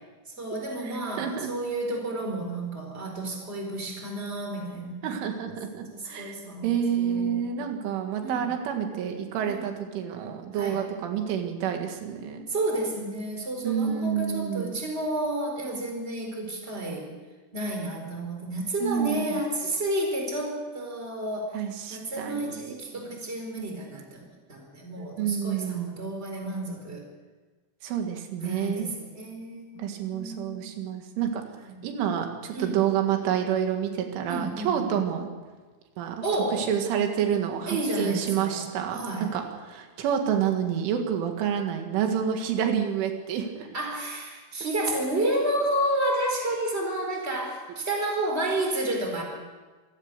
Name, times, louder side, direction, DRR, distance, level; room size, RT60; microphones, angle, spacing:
voice 1, 0.3-7.7 8.2-8.5 9.4-9.7 10.5-10.8 12.5-17.1 17.5-21.5 21.9-27.0 28.4-30.8 31.6-31.8 32.5-32.8 34.3-34.9 36.2-36.6 37.7-39.3 43.7-49.2, right 1 dB, 15° right, 2 dB, 4.3 m, -31 dB
voice 2, 0.8-1.5 5.0-6.4 6.6-12.5 13.6-14.7 18.8-19.4 21.5-23.2 25.0-26.0 27.8-28.9 29.8-31.4 31.8-35.3 36.0-39.4 39.7-43.7, right 8 dB, 90° right, 4 dB, 4.4 m, -29 dB
26.5 x 16.5 x 6.8 m, 1.3 s
omnidirectional pair, 5.4 m